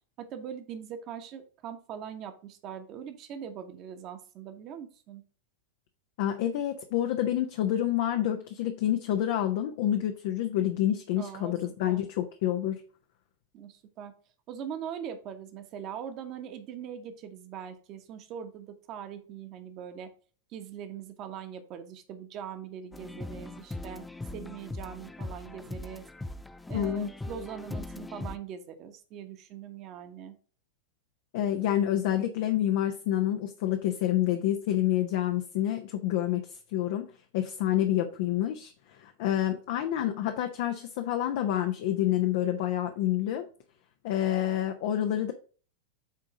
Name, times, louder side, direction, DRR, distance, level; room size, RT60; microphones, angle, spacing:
voice 1, 0.2-5.2 11.2-11.5 11.9-12.0 13.5-14.1 14.5-20.1 20.5-24.1 24.3-26.0 26.7-30.3, right 8 dB, 35° right, 8 dB, 1.3 m, -41 dB
voice 2, 6.2-12.7 26.7-27.1 31.3-43.5 44.0-45.3, left 12 dB, 50° left, 6 dB, 0.7 m, -28 dB
sound 1, 22.9-28.4, left 2 dB, 5° left, 0.5 m, -40 dB
8.4 x 3.7 x 5.0 m, 0.39 s
figure-of-eight pair, 90°, 0 cm